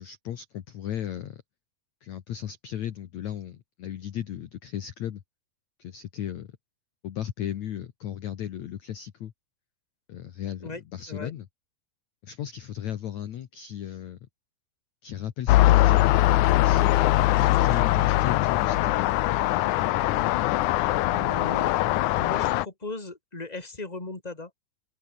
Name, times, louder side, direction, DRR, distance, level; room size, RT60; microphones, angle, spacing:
voice 1, 0.0-1.4 2.0-5.2 5.8-6.6 7.0-9.3 10.1-11.5 12.2-14.2 15.0-16.2 16.5-17.1 17.4-19.2, left 11 dB, 60° left, 2.2 m, -36 dB
sound 1, 15.5-22.7, left 16 dB, 90° left, 1.7 m, -21 dB
voice 2, 21.1-21.7 22.2-24.5, left 2 dB, 10° left, 3.5 m, -37 dB
open air
omnidirectional pair, 4.5 m